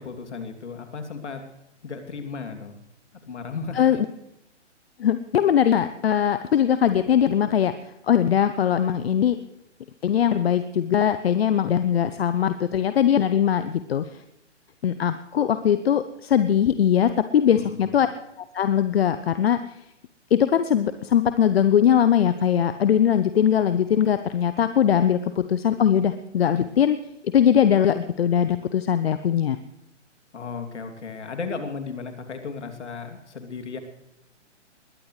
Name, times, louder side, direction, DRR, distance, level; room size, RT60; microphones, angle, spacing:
voice 1, 0.0-1.4 1.8-2.8 3.2-4.0 17.5-18.0 30.3-33.8, left 5 dB, 70° left, 5 dB, 2.9 m, -35 dB
voice 2, 5.0-7.7 8.1-9.4 10.0-14.1 14.8-18.1 18.5-19.6 20.3-27.0 27.2-29.6, left 9 dB, 55° left, 11 dB, 0.9 m, -21 dB
21.0 x 17.5 x 3.3 m, 0.87 s
figure-of-eight pair, 135°, 36 cm